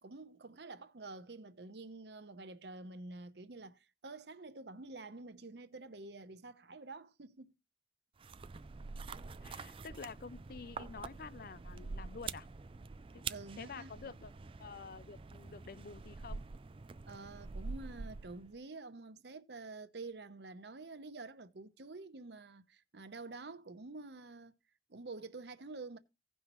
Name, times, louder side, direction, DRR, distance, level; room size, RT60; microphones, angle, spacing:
voice 1, 0.0-7.6 13.3-14.0 17.1-24.6 24.9-26.0, right 3 dB, 65° right, 0.9 m, -48 dB
sound 1, 8.2-18.6, right 4 dB, 30° right, 0.4 m, -46 dB
voice 2, 9.4-12.5 13.1-13.3 13.6-14.3 14.6-16.4, left 5 dB, 50° left, 0.4 m, -49 dB
16.5 x 5.5 x 3.1 m
head